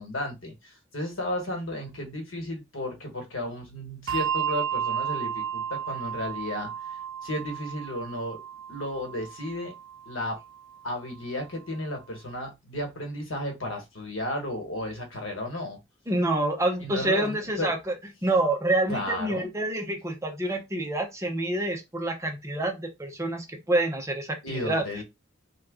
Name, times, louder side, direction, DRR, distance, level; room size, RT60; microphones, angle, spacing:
voice 1, 0.0-6.7 7.2-8.4 8.7-9.7 10.1-10.4 10.8-15.8 16.8-17.7 18.9-19.5 24.4-25.0, left 1 dB, 80° left, 1.2 m, -33 dB
Bell, 4.1-10.9, right 8 dB, 75° right, 0.5 m, -33 dB
voice 2, 16.1-24.8, right 2 dB, 15° right, 0.6 m, -27 dB
2.9 x 2.3 x 3.6 m
head